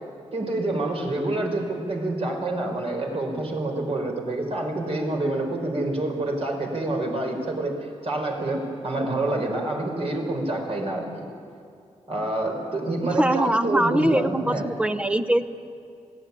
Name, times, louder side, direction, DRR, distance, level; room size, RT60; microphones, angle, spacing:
voice 1, 0.3-7.7 8.0-11.2 12.1-14.7, right 2 dB, 55° right, 1 dB, 4.9 m, -27 dB
voice 2, 13.0-15.5, right 1 dB, 10° right, 10 dB, 0.9 m, -23 dB
21.0 x 17.0 x 9.8 m, 2.4 s
wide cardioid pair, 120°, 12 cm